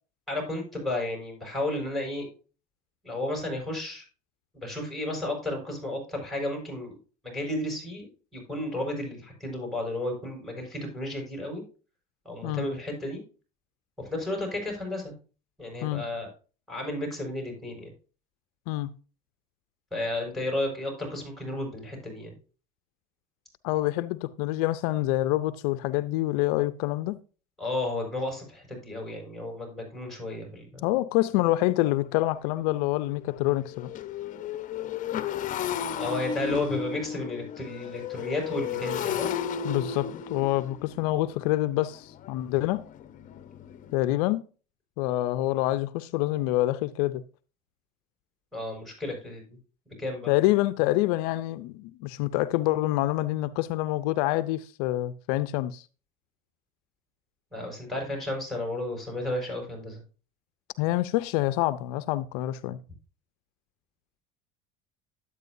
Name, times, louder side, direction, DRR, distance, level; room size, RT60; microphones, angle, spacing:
voice 1, 0.3-2.3 3.0-4.0 4.5-7.0 7.2-11.6 12.2-13.2 14.1-15.1 15.6-16.3 16.7-17.9 19.9-22.4 27.6-30.9 35.9-39.3 48.5-49.6 50.0-50.3 57.5-60.0, left 1 dB, ahead, 5.7 m, -33 dB
voice 2, 23.6-27.2 30.8-33.9 39.6-42.8 43.9-44.4 45.0-47.2 50.3-55.8 60.8-62.8, left 16 dB, 80° left, 0.5 m, -26 dB
Motorcycle, 31.3-31.4 31.9-32.1 32.3-43.9, left 8 dB, 45° left, 0.9 m, -34 dB
11.0 x 8.5 x 2.6 m
supercardioid pair, 105°, 19 cm